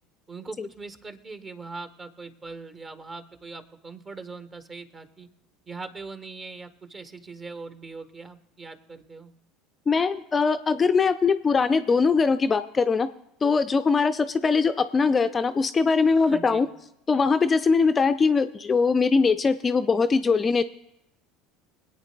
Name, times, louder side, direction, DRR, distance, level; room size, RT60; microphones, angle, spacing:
voice 1, 0.3-5.3 5.7-9.3 16.1-16.7, right 4 dB, 30° right, 9 dB, 1.2 m, -41 dB
voice 2, 9.9-13.1 13.4-16.7 17.1-20.6, left 4 dB, 25° left, 10 dB, 0.4 m, -21 dB
25.0 x 8.8 x 2.3 m, 0.84 s
hypercardioid pair, 70°, 0 cm